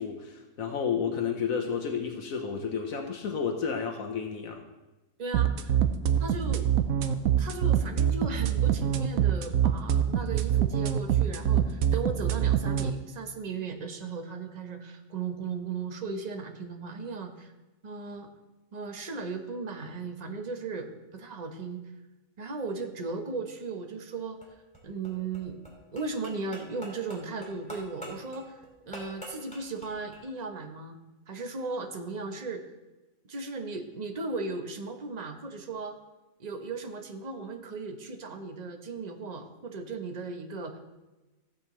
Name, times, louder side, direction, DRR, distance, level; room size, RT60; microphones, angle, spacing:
voice 1, 0.0-4.6, left 6 dB, 75° left, 3 dB, 1.3 m, -31 dB
voice 2, 5.2-5.7 6.2-6.7 7.4-17.5 17.8-18.3 18.7-21.8 22.4-24.4 24.8-25.6 25.9-28.6 28.9-31.0 31.3-32.6 33.3-36.0 36.4-40.8, right 4 dB, 35° right, 5 dB, 1.0 m, -36 dB
sound 1, 5.3-12.9, right 10 dB, 80° right, 1.1 m, -24 dB
sound 2, 24.4-30.2, equal, 5° left, 2.4 m, -46 dB
16.0 x 7.8 x 3.1 m, 1.1 s
omnidirectional pair, 1.5 m